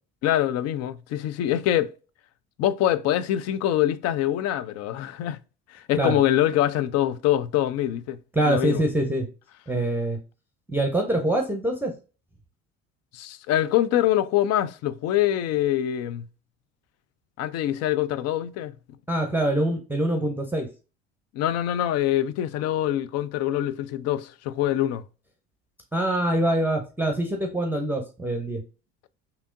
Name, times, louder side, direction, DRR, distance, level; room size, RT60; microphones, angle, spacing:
voice 1, 0.2-1.9 2.6-5.4 5.7-8.2 8.4-8.8 13.1-16.3 17.4-18.7 21.3-25.0, left 12 dB, 50° left, 0.4 m, -24 dB
voice 2, 8.3-9.3 9.7-10.2 10.7-11.9 19.1-20.7 25.9-28.6, right 1 dB, 5° right, 0.7 m, -24 dB
3.4 x 2.8 x 2.5 m
hypercardioid pair, 65°, 32 cm